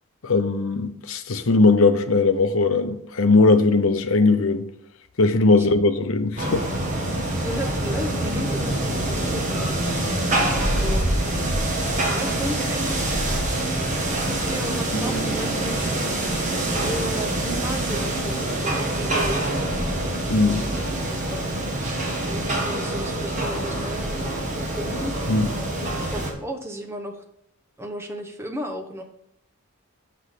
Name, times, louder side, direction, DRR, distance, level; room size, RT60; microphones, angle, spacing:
voice 1, 0.2-4.7 5.2-6.6 20.3-20.6 25.3-25.5, left 3 dB, 70° left, 0.7 m, -19 dB
sound 1, 6.4-26.3, right 1 dB, 35° right, 1.5 m, -25 dB
voice 2, 7.4-9.8 10.7-11.2 12.1-13.2 13.5-16.0 16.7-19.5 20.4-20.8 21.1-21.6 22.2-25.1 25.9-27.2 27.8-29.0, right 1 dB, 10° right, 0.9 m, -34 dB
sound 2, 14.9-22.1, right 3 dB, 35° left, 1.8 m, -39 dB
6.7 x 6.2 x 5.0 m
head